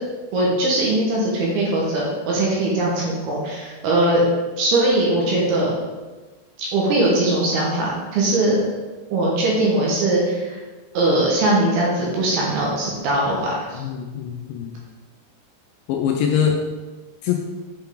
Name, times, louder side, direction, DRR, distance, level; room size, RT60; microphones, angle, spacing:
voice 1, 0.3-4.2 4.6-5.7 6.6-8.6 9.1-10.6 10.9-13.8, right 2 dB, 65° right, -4 dB, 2.9 m, -20 dB
voice 2, 13.8-14.7 15.9-16.6 17.2-17.4, left 8 dB, 80° left, 1 dB, 2.6 m, -23 dB
7.9 x 5.7 x 3.8 m, 1.3 s
omnidirectional pair, 5.5 m